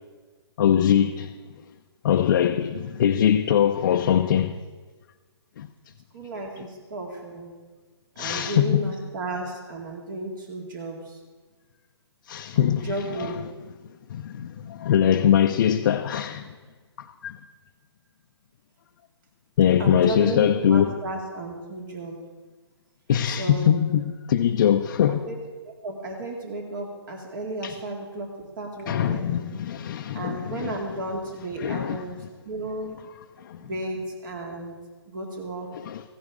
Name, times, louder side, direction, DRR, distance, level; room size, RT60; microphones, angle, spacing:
voice 1, 0.6-1.3 2.0-4.6 5.6-5.7 8.2-8.8 12.3-13.3 14.1-16.5 17.2-17.4 19.6-21.0 23.1-25.3 27.6-27.7 28.9-30.7 31.6-32.0 33.4-33.6 35.7-36.0, left 9 dB, 45° left, 0.6 m, -22 dB
voice 2, 6.1-7.5 8.2-11.2 12.5-13.4 19.8-22.2 23.3-23.8 25.1-25.3 25.7-29.3 30.1-32.2 32.5-33.0 33.6-34.7 35.1-35.7, right 2 dB, 45° right, 2.2 m, -33 dB
16.0 x 15.0 x 3.6 m
figure-of-eight pair, 140°, 14 cm